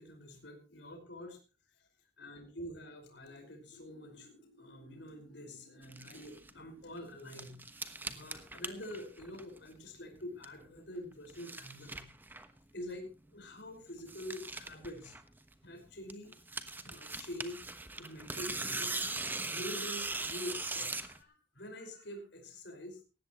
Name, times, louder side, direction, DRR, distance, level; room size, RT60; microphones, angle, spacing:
voice 1, 0.0-1.4 1.7-1.9 2.2-12.0 12.7-15.2 15.6-16.3 16.8-17.6 17.9-19.0 19.5-23.0, left 1 dB, 65° left, 3 dB, 5.0 m, -46 dB
sound 1, 5.8-6.5 7.0-9.8 10.0-10.7 11.1-12.6 12.9-13.0 13.3-13.4 13.6-13.7 13.9-15.7 16.1-21.2, right 3 dB, 10° right, 1.1 m, -40 dB
18.5 x 15.5 x 3.0 m, 0.32 s
head